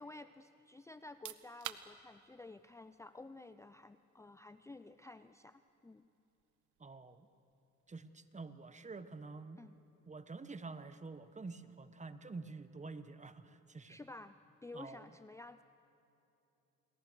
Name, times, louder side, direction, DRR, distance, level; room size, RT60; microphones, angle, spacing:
voice 1, 0.0-6.1 9.6-9.7 13.9-14.4 14.6-15.6, left 2 dB, 10° left, 12 dB, 0.5 m, -52 dB
sound 1, 1.0-13.6, right 12 dB, 80° right, 1.0 m, -57 dB
voice 2, 6.8-7.3 7.9-9.6 10.1-14.0 14.7-15.1, right 3 dB, 25° right, 11 dB, 1.3 m, -48 dB
29.0 x 21.0 x 6.3 m, 2.9 s
cardioid pair, 90°, 30 cm